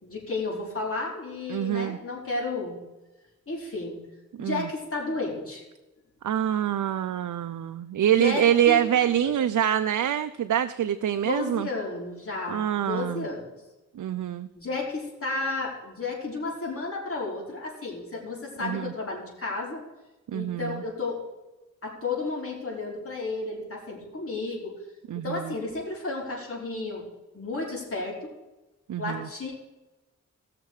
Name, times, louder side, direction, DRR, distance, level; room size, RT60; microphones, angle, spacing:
voice 1, 0.0-2.8 3.5-4.0 4.4-5.6 8.2-8.9 9.2-9.3 11.2-13.6 14.6-19.8 20.3-21.2 21.8-24.7 25.1-27.1 27.3-28.3 29.0-29.5, left 3 dB, 45° left, -3 dB, 5.1 m, -32 dB
voice 2, 1.5-2.0 4.4-4.7 6.2-11.7 12.5-13.3 14.0-14.5 18.6-18.9 20.3-20.8 25.1-25.5 28.9-29.3, right 10 dB, 80° right, 10 dB, 0.5 m, -25 dB
18.5 x 6.7 x 4.8 m, 1.1 s
cardioid pair, 60°, 30 cm